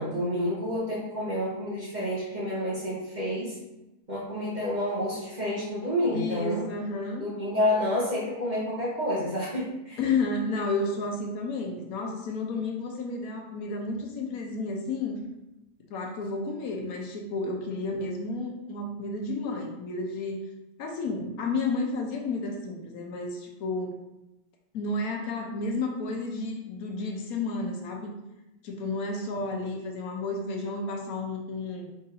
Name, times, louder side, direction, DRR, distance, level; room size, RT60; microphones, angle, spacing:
voice 1, 0.0-3.6 4.1-6.6 7.2-10.0 29.1-29.2, left 1 dB, 35° right, -6 dB, 0.8 m, -29 dB
voice 2, 6.1-7.3 10.0-15.1 15.9-20.4 20.8-24.0 24.7-28.1 28.6-31.9, left 3 dB, 75° left, 1 dB, 1.1 m, -31 dB
3.7 x 2.6 x 4.0 m, 0.96 s
omnidirectional pair, 1.6 m